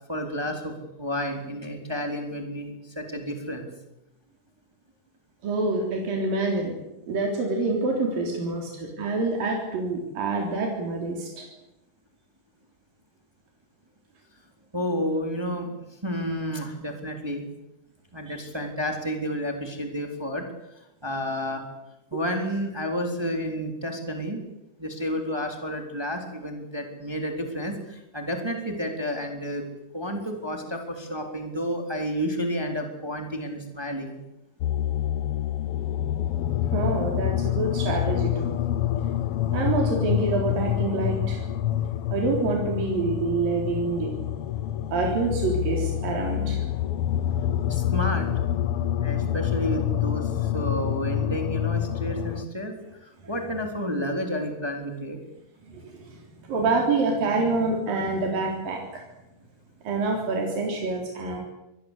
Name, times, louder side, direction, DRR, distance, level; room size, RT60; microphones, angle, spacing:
voice 1, 0.1-3.7 14.7-15.7 16.0-17.4 18.1-20.4 21.0-21.6 22.1-24.4 24.8-29.6 29.9-34.2 47.7-48.3 49.0-52.7 53.0-55.2, equal, 5° right, 4 dB, 3.3 m, -30 dB
voice 2, 5.4-6.7 7.1-11.5 18.3-18.4 36.7-38.5 39.5-41.4 42.1-44.1 44.9-46.6 55.6-59.0 59.9-61.4, right 3 dB, 85° right, 0 dB, 5.4 m, -27 dB
sound 1, 34.6-52.5, left 11 dB, 70° left, 1.4 m, -27 dB
26.0 x 20.5 x 8.2 m, 0.91 s
omnidirectional pair, 3.9 m